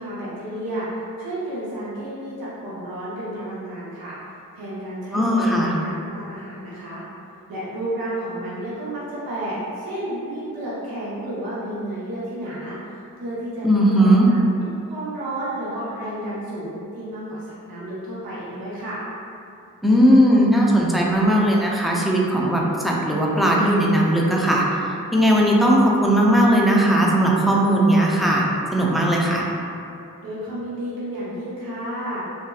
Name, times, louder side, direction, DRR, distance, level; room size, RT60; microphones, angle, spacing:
voice 1, 0.0-4.2 4.5-7.0 7.5-14.4 14.9-19.0 30.2-32.2, right 1 dB, 80° right, -9 dB, 0.8 m, -31 dB
voice 2, 5.1-5.7 13.6-14.3 19.8-24.8 25.1-28.5 28.7-29.4, right 1 dB, ahead, -3 dB, 0.4 m, -18 dB
2.7 x 2.3 x 2.3 m, 2.6 s
cardioid pair, 50°, 35 cm